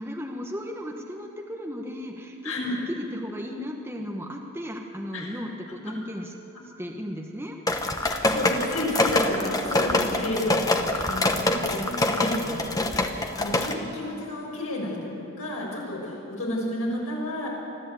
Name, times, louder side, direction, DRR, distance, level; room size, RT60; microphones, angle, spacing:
voice 1, 0.0-2.5 3.0-6.3 6.6-7.6, equal, 10° right, 1 dB, 1.2 m, -35 dB
voice 2, 2.4-2.8 5.1-5.3 8.0-17.5, left 1 dB, 80° left, -3 dB, 6.6 m, -31 dB
sound 1, 7.7-13.7, left 2 dB, 15° left, 1.0 m, -25 dB
24.5 x 14.5 x 8.4 m, 2.9 s
head